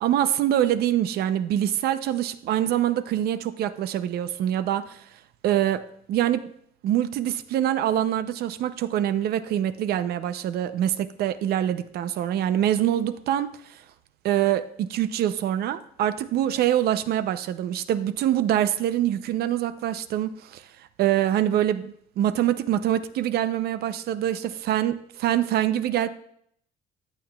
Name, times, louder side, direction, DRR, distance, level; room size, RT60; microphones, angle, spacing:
voice 1, 0.0-5.0 5.4-5.8 6.1-6.5 6.8-13.5 14.2-20.6 21.0-24.9 25.2-26.1, right 11 dB, 70° right, 12 dB, 0.5 m, -24 dB
14.5 x 8.5 x 2.3 m, 0.68 s
cardioid pair, 110°, 17 cm